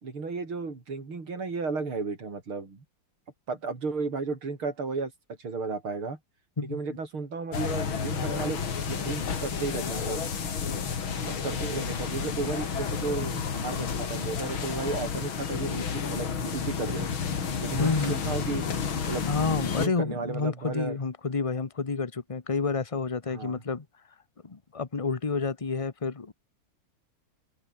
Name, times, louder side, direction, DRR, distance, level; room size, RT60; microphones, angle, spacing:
voice 1, 0.0-2.8 3.5-5.1 5.4-6.2 6.6-10.3 10.9-17.1 17.6-18.6 19.1-21.0 23.3-23.6, right 4 dB, 75° right, 5.1 m, -34 dB
voice 2, 6.6-7.0 17.8-18.2 19.3-23.8 24.4-26.3, left 4 dB, 25° left, 0.7 m, -29 dB
sound 1, 7.5-19.9, left 6 dB, 70° left, 3.1 m, -31 dB
omnidirectional pair, 2.4 m